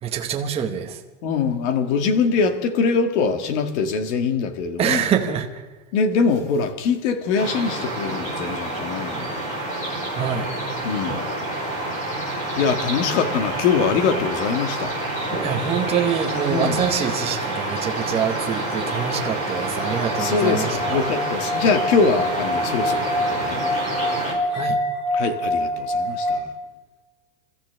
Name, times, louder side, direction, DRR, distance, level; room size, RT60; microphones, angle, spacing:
voice 1, 0.0-1.0 4.8-5.6 10.1-10.5 15.4-21.1 24.5-24.8, right 8 dB, 15° right, 2 dB, 1.0 m, -25 dB
voice 2, 1.2-5.1 5.9-9.5 10.8-11.3 12.2-15.0 16.5-16.8 20.2-23.8 25.1-26.5, left 5 dB, 50° left, 7 dB, 1.8 m, -23 dB
sound 1, 7.4-24.3, right 1 dB, 20° left, 5.1 m, -28 dB
sound 2, 18.0-26.4, left 1 dB, 80° left, 6.9 m, -27 dB
28.5 x 14.0 x 3.4 m, 1.2 s
supercardioid pair, 170°, 42 cm